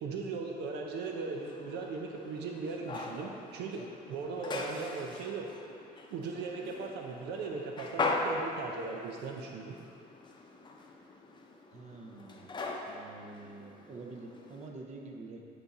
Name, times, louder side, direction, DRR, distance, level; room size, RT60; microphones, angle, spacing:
voice 1, 0.0-5.5 6.1-9.8, right 4 dB, 80° right, 1 dB, 0.6 m, -38 dB
sound 1, 0.9-14.7, left 2 dB, 25° left, 0.7 m, -40 dB
voice 2, 11.7-12.5 12.9-15.4, right 3 dB, 45° right, 2 dB, 0.8 m, -47 dB
9.8 x 3.9 x 4.2 m, 2.5 s
cardioid pair, 110°, 17 cm